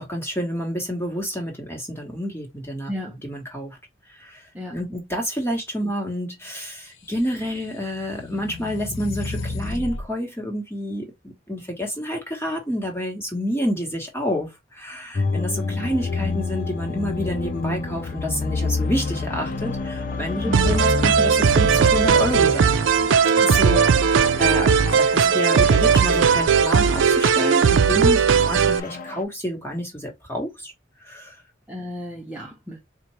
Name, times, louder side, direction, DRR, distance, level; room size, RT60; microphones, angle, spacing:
voice 1, 0.0-2.9 3.2-3.8 4.1-22.8 23.4-24.7 25.1-30.7 31.0-31.4, equal, 10° left, 1.3 m, -29 dB
sound 1, 7.1-10.1, left 2 dB, 85° left, 0.9 m, -33 dB
sound 2, 15.1-29.2, left 3 dB, 45° left, 0.5 m, -29 dB
voice 2, 20.5-20.8 24.6-25.0 25.2-25.4 31.7-32.8, left 1 dB, 5° right, 0.6 m, -33 dB
sound 3, 20.5-28.8, right 6 dB, 85° right, 0.4 m, -18 dB
4.4 x 2.5 x 3.0 m
head